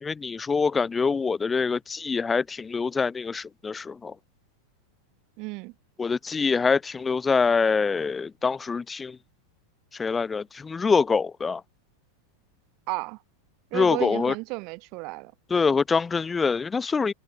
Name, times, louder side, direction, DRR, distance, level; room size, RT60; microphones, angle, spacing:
voice 1, 0.0-4.1 6.0-9.2 9.9-11.6 13.7-14.3 15.5-17.1, left 5 dB, 15° left, 0.4 m, -25 dB
voice 2, 5.4-5.7 12.9-13.2 13.7-15.3, right 28 dB, 45° right, 3.9 m, -33 dB
figure-of-eight pair, 90°, 0 cm